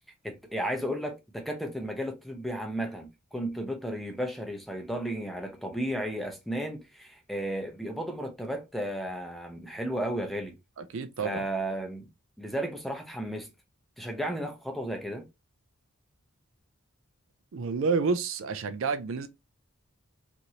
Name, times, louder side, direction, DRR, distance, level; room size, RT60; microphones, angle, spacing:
voice 1, 0.2-10.5 11.2-12.1 12.4-13.5 14.0-15.3, right 1 dB, ahead, 0.6 m, -34 dB
voice 2, 10.8-11.5 17.5-19.3, right 4 dB, 60° right, 0.4 m, -29 dB
2.9 x 2.6 x 2.8 m
head